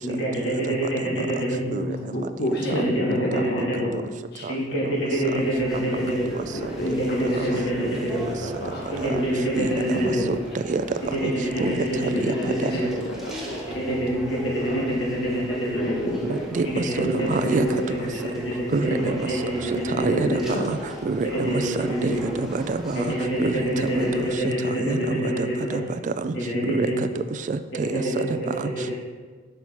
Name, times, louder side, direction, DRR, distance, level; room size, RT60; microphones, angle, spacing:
voice 1, 0.0-1.6 2.6-3.9 4.5-6.2 6.8-8.2 8.9-10.3 11.0-12.9 13.7-15.9 16.6-17.8 18.2-20.5 21.2-22.4 22.9-25.8 26.4-27.0 27.7-28.3 28.5-28.8, equal, 85° left, -5 dB, 2.3 m, -26 dB
voice 2, 0.9-1.3 1.6-3.9 4.3-4.5 6.0-7.6 7.8-8.9 9.9-10.3 12.2-13.6 15.7-16.4 17.2-17.5 20.1-20.7 21.3-21.4 25.3-25.7, equal, 60° left, -1 dB, 0.9 m, -31 dB
sound 1, 4.6-24.3, right 1 dB, ahead, 1.0 m, -37 dB
voice 3, 9.6-10.0 10.7-10.8 11.2-11.3 11.6-11.8 12.2-12.3 12.6-12.7 16.2-17.8 18.7-19.1 20.0-20.3 20.6-20.8 21.1-23.0 23.4-23.6 23.9-24.1 24.9-26.3 26.7-26.9 27.5-27.9 28.2-28.6, right 4 dB, 40° right, 11 dB, 0.3 m, -27 dB
6.1 x 5.5 x 4.5 m, 1.4 s
head